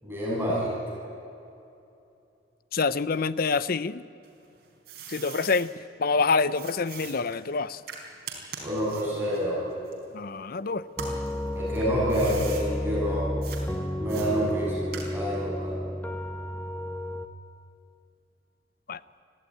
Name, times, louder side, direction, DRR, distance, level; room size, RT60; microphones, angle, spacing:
voice 1, 0.0-0.7 8.6-9.6 10.5-10.6 11.5-13.4 14.0-15.8, equal, 15° right, -7 dB, 7.4 m, -28 dB
voice 2, 2.7-4.0 5.1-5.7 6.0-7.8 10.1-10.8 18.9-19.0, left 4 dB, 50° left, 16 dB, 0.6 m, -26 dB
sound 1, 4.2-5.7 6.5-10.5 10.9-12.7 13.4-13.6 14.1-15.4, right 6 dB, 55° right, 4.5 m, -42 dB
sound 2, 11.0-17.3, left 1 dB, 10° left, 0.8 m, -32 dB
24.0 x 15.5 x 9.6 m, 2.7 s
head